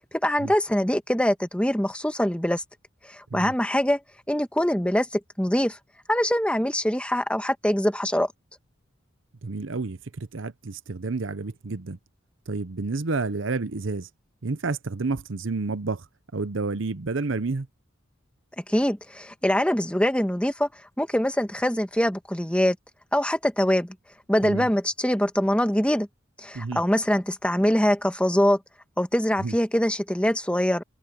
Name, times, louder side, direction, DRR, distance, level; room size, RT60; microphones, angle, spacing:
voice 1, 0.1-2.6 3.1-4.0 4.3-5.8 6.1-8.3 18.7-20.7 21.0-22.7 23.1-23.9 24.3-26.1 26.4-28.6 29.0-30.8, equal, 5° left, 1.4 m, -23 dB
voice 2, 9.4-12.0 12.5-14.1 14.4-16.1 16.3-17.7 24.4-24.7 26.5-26.8 29.4-29.6, right 3 dB, 65° right, 0.8 m, -30 dB
head